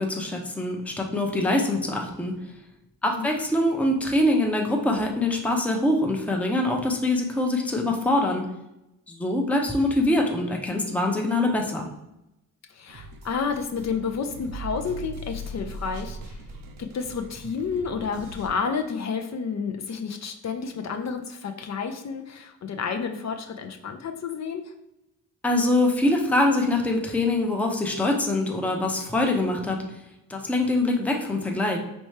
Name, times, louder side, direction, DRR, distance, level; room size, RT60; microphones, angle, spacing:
voice 1, 0.0-2.3 3.0-8.4 9.1-11.9 25.4-29.8 30.3-31.8, left 1 dB, 5° left, 1 dB, 0.6 m, -24 dB
voice 2, 12.7-16.4 16.9-24.6, left 5 dB, 55° left, 5 dB, 0.5 m, -30 dB
sound 1, 12.9-18.5, right 1 dB, 80° right, 0.6 m, -40 dB
4.3 x 3.3 x 3.1 m, 0.89 s
cardioid pair, 95°, 33 cm